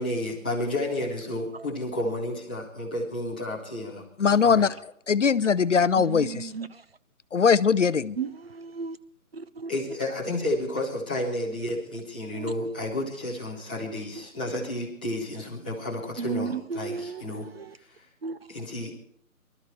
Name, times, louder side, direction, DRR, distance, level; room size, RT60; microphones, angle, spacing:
voice 1, 0.0-4.7 9.7-17.5 17.7-18.1 18.5-18.9, left 1 dB, 5° left, 0.9 m, -31 dB
voice 2, 4.2-4.7 5.1-6.5 7.3-8.2, left 6 dB, 55° left, 0.6 m, -21 dB
voice 3, 6.0-6.7 8.2-9.0 9.3-9.7 12.3-12.5 16.2-17.7 18.2-18.4, right 5 dB, 45° right, 0.6 m, -34 dB
25.0 x 13.0 x 3.1 m
figure-of-eight pair, 165°, 44 cm